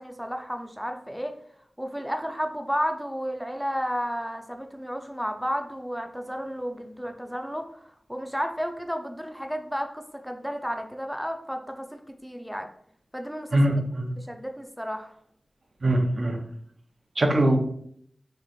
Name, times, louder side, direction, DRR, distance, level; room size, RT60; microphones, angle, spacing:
voice 1, 0.0-1.4 1.8-12.7 13.1-13.6 14.2-15.1, equal, ahead, 5 dB, 0.4 m, -32 dB
voice 2, 13.5-14.1 15.8-16.4 17.2-17.6, right 1 dB, 60° right, 3 dB, 0.6 m, -22 dB
3.0 x 2.5 x 4.1 m, 0.66 s
wide cardioid pair, 75°, 0 cm